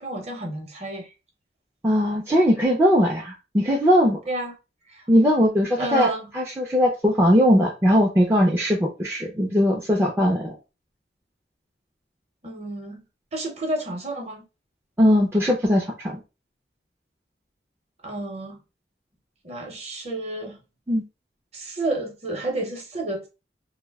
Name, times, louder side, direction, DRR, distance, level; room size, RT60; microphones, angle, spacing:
voice 1, 0.0-1.1 4.3-4.5 4.9-5.0 5.8-6.3 12.4-13.0 13.3-14.4 18.0-18.6 19.4-20.6 21.5-23.3, right 2 dB, 35° right, 0.7 m, -30 dB
voice 2, 1.8-4.2 5.1-6.1 6.3-10.5 15.0-16.2 20.9-21.0, equal, 15° right, 0.4 m, -20 dB
2.6 x 2.1 x 3.3 m
head